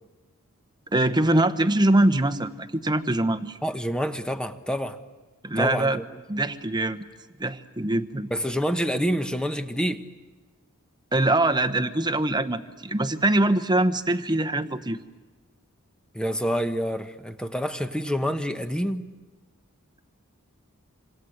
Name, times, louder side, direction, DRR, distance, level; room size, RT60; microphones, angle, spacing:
voice 1, 0.9-3.6 5.4-6.0 6.3-7.1 7.4-8.3 11.1-15.0, right 1 dB, 20° right, 11 dB, 1.1 m, -23 dB
voice 2, 3.6-5.0 5.6-6.0 8.3-10.0 16.1-19.0, equal, 5° left, 8 dB, 1.1 m, -27 dB
26.5 x 26.5 x 8.0 m, 1.3 s
head